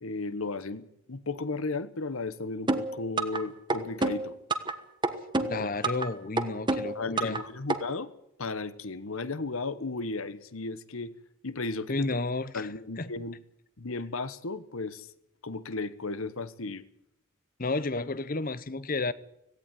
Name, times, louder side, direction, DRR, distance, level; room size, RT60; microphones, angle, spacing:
voice 1, 0.0-4.3 5.4-5.7 6.9-8.1 8.4-11.1 11.4-12.2 12.5-13.4 13.8-15.1 15.4-16.8, left 3 dB, 75° left, 1.2 m, -35 dB
sound 1, 2.7-3.4 3.7-4.7 5.0-6.1 6.4-7.4 7.7-7.8, right 2 dB, 20° right, 1.3 m, -27 dB
voice 2, 5.5-7.4 11.9-13.1 17.6-19.1, left 3 dB, 40° left, 0.8 m, -32 dB
17.0 x 16.5 x 9.2 m
head